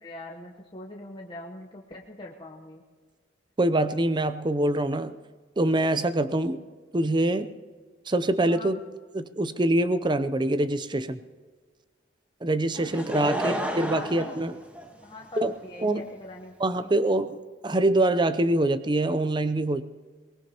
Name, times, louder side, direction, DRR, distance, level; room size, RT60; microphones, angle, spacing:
voice 1, 0.0-2.8 8.4-8.7 13.0-14.4 15.0-16.9, left 1 dB, 25° left, -1 dB, 1.0 m, -42 dB
voice 2, 3.6-5.1 5.6-6.6 6.9-7.5 8.1-8.8 9.1-11.2 12.4-14.5 15.4-15.5 15.8-16.1 16.6-17.4 17.6-19.8, right 1 dB, 25° right, 12 dB, 0.6 m, -24 dB
Laughter / Crowd, 12.7-15.4 16.1-16.2, equal, 10° right, 1.3 m, -32 dB
23.0 x 19.5 x 3.0 m, 1.4 s
head